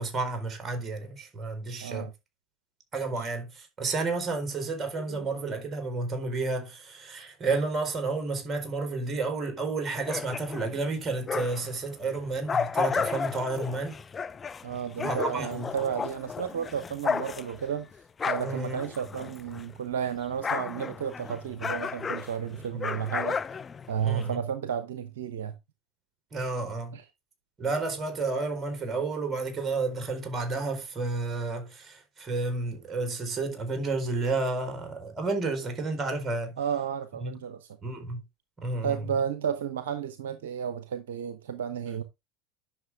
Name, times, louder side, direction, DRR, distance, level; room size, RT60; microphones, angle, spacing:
voice 1, 0.0-2.1 2.9-14.0 15.0-15.7 18.4-18.8 24.0-24.4 26.3-27.0 27.6-36.5 37.2-37.3 37.8-38.2 38.6-39.0, right 3 dB, 30° right, 4.1 m, -31 dB
voice 2, 1.8-2.1 3.1-3.3 5.0-5.5 14.6-17.9 18.3-23.4 23.9-25.5 26.9-27.0 36.6-38.0 38.8-42.0, right 8 dB, 75° right, 0.8 m, -32 dB
sound 1, 9.9-11.8 12.2-19.8 20.0-24.3, left 6 dB, 25° left, 0.7 m, -33 dB
10.5 x 6.5 x 3.4 m
hypercardioid pair, 75°, 0 cm